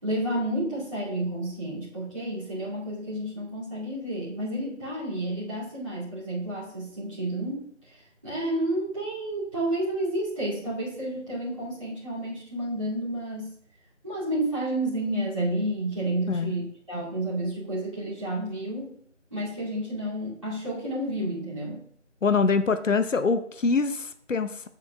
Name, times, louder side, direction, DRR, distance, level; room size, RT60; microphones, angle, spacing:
voice 1, 0.0-13.5 14.0-18.9 19.3-21.8, right 1 dB, 25° right, -10 dB, 2.5 m, -30 dB
voice 2, 22.2-24.7, left 4 dB, 80° left, 11 dB, 0.7 m, -24 dB
13.5 x 6.9 x 2.3 m, 0.64 s
figure-of-eight pair, 180°, 37 cm